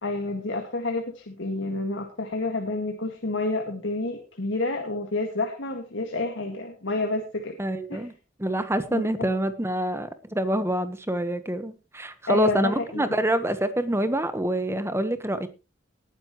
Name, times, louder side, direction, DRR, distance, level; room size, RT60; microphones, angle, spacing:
voice 1, 0.0-7.6 7.9-8.0 8.9-9.3 12.3-13.1, left 2 dB, 80° left, 2.0 m, -29 dB
voice 2, 7.6-8.1 8.4-15.5, right 1 dB, 15° right, 1.3 m, -26 dB
19.5 x 10.0 x 3.1 m
head